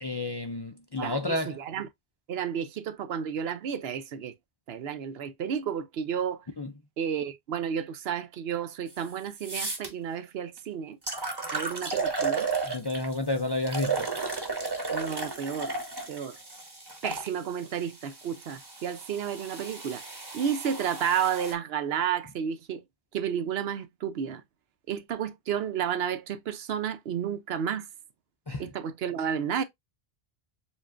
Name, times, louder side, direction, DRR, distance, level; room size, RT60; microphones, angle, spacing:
voice 1, 0.0-1.6 6.6-6.7 12.6-14.1 28.5-28.6, left 2 dB, 35° left, 0.4 m, -31 dB
voice 2, 1.0-1.9 2.3-4.3 4.7-6.4 7.0-11.0 11.5-12.5 14.9-15.7 16.1-16.4 17.0-20.0 20.3-22.8 23.1-24.4 24.9-27.9 28.6-29.6, right 8 dB, 75° right, 0.9 m, -31 dB
sound 1, 8.9-9.0 9.4-9.9 10.6-10.7 11.1-13.1 13.7-17.3 18.1-21.5, right 4 dB, 25° right, 1.0 m, -33 dB
7.1 x 2.5 x 2.4 m
omnidirectional pair, 1.0 m